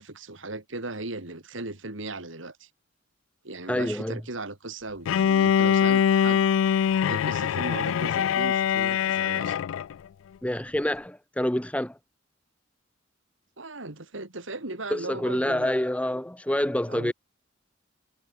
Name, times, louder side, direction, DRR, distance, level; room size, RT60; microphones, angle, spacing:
voice 1, 0.0-2.7 3.4-6.4 7.1-9.6 13.6-15.7 16.9-17.1, right 2 dB, 75° right, 3.1 m, -37 dB
voice 2, 3.7-4.2 10.4-12.0 14.9-17.1, left 1 dB, 5° left, 1.0 m, -27 dB
Bowed string instrument, 5.1-9.9, left 8 dB, 85° left, 0.3 m, -23 dB
head